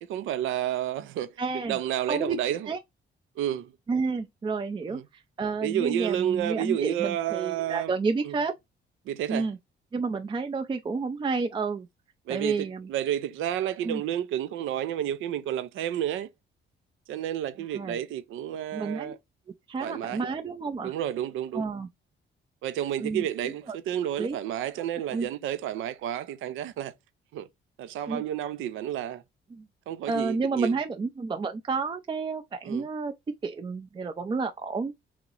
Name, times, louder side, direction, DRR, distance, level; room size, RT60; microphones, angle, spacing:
voice 1, 0.0-2.7 3.4-3.7 4.9-5.0 5.6-7.9 8.2-8.4 9.1-9.5 12.3-16.3 17.1-19.2 19.8-20.3 20.8-21.6 22.6-26.9 27.3-27.5 27.8-29.2 29.9-30.7 32.6-32.9, right 11 dB, 85° right, 0.5 m, -31 dB
voice 2, 1.4-1.8 2.1-2.4 2.7-2.8 3.9-8.5 9.3-9.6 9.9-11.9 12.3-12.9 13.8-14.0 17.7-18.0 18.7-19.1 19.7-20.9 21.5-21.9 23.0-23.2 24.2-24.4 25.1-25.3 28.1-28.2 29.5-29.6 30.1-33.1 33.4-34.9, right 4 dB, 25° right, 0.4 m, -30 dB
3.0 x 2.8 x 3.7 m
cardioid pair, 90°, 20 cm